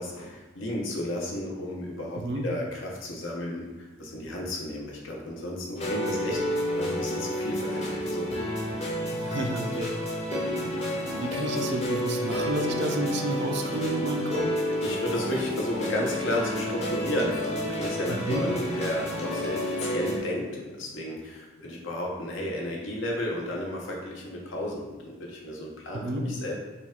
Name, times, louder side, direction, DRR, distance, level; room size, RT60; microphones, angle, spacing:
voice 1, 0.0-8.3 14.8-26.5, left 1 dB, 65° left, -1 dB, 0.8 m, -33 dB
sound 1, 5.8-20.2, left 1 dB, 30° left, 0.8 m, -30 dB
voice 2, 9.1-9.9 10.3-14.4 18.1-18.4 25.9-26.2, right 1 dB, 55° right, 3 dB, 0.4 m, -31 dB
4.8 x 2.4 x 3.6 m, 1.1 s
head